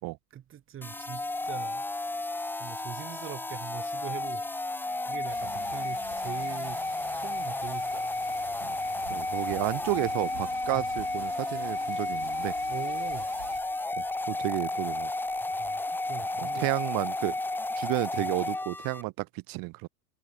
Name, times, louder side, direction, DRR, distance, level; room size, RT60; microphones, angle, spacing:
voice 1, 0.3-1.8 2.5-4.5 5.0-6.8 7.1-8.2 10.7-10.9 12.7-13.3 15.5-16.7 18.2-18.3, right 10 dB, 25° right, 2.3 m, -42 dB
sound 1, 0.8-19.0, left 2 dB, 5° left, 0.8 m, -32 dB
sound 2, 5.3-13.6, right 11 dB, 75° right, 2.3 m, -48 dB
voice 2, 9.1-12.5 13.9-15.1 16.4-17.3 17.8-19.9, right 24 dB, 45° right, 3.1 m, -32 dB
hypercardioid pair, 105°, 49 cm